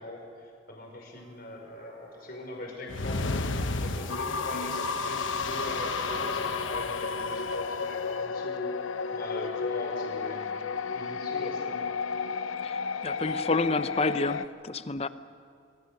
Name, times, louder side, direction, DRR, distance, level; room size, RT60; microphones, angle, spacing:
voice 1, 0.0-3.3 3.8-8.7 9.1-10.5 10.9-11.8, left 2 dB, 50° left, 1 dB, 5.2 m, -40 dB
sound 1, 1.2-10.0, right 1 dB, 30° right, 4.3 m, -44 dB
sound 2, 2.9-7.8, left 3 dB, 70° left, 1.1 m, -35 dB
sound 3, 4.1-14.5, left 5 dB, 85° left, 0.7 m, -33 dB
voice 2, 12.6-15.1, left 3 dB, 30° left, 13 dB, 0.7 m, -29 dB
28.0 x 21.5 x 6.6 m, 2.3 s
head